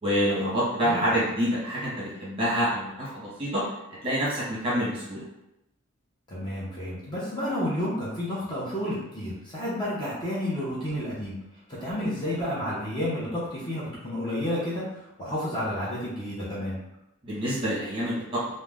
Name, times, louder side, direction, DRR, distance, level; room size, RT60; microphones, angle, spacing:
voice 1, 0.0-3.6 4.0-5.2 17.2-18.4, equal, 25° right, -8 dB, 0.9 m, -27 dB
voice 2, 6.3-11.3 11.8-14.8 15.2-16.8, left 1 dB, 20° left, -8 dB, 0.6 m, -30 dB
2.5 x 2.0 x 3.3 m, 0.90 s
head